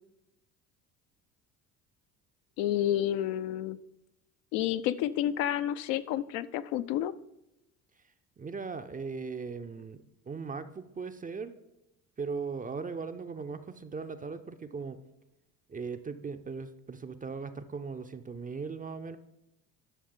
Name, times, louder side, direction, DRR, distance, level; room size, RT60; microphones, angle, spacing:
voice 1, 2.6-3.8 4.5-7.1, left 12 dB, 70° left, 13 dB, 0.5 m, -30 dB
voice 2, 8.4-11.5 12.2-15.0 15.7-19.2, right 5 dB, 20° right, 10 dB, 0.5 m, -38 dB
11.0 x 6.3 x 3.7 m, 0.89 s
hypercardioid pair, 60°, 47 cm